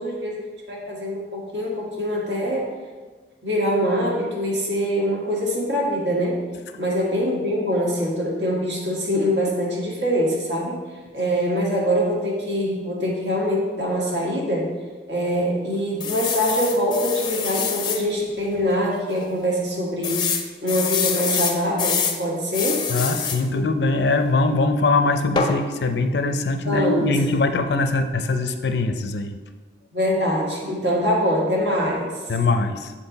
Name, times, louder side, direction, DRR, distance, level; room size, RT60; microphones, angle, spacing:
voice 1, 0.0-2.7 3.4-6.4 6.8-10.8 11.1-14.7 15.1-20.3 20.6-22.9 26.7-27.2 29.9-32.2, equal, 90° right, -3 dB, 1.8 m, -24 dB
sound 1, 16.0-18.0 18.6-18.7 18.9-19.0 20.0-22.2 22.5-23.4 25.4-25.6, left 6 dB, 25° left, 0.4 m, -25 dB
voice 2, 22.9-29.4 32.3-32.9, left 3 dB, 75° left, 8 dB, 0.5 m, -22 dB
7.2 x 4.5 x 4.0 m, 1.4 s
head